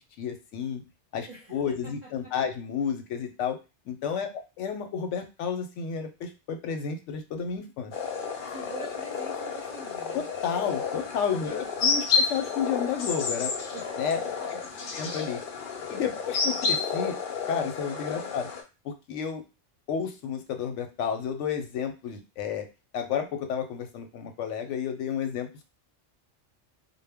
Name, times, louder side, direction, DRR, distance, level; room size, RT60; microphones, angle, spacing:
voice 1, 0.2-0.8 1.1-3.6 3.9-7.9 10.1-13.5 14.0-14.2 14.5-14.6 14.9-15.4 15.9-17.2 17.5-18.5 18.8-19.4 19.9-22.7 22.9-25.6, left 7 dB, 90° left, 6 dB, 0.9 m, -31 dB
voice 2, 1.3-2.3 8.5-10.2 11.4-12.1 13.7-13.8 14.4-14.5 14.8-14.9 16.1-16.2 18.1-18.4, right 2 dB, 45° right, -5 dB, 0.8 m, -44 dB
sound 1, 7.9-18.6, left 5 dB, 60° left, 0.6 m, -31 dB
2.1 x 2.1 x 3.4 m, 0.29 s
omnidirectional pair, 1.2 m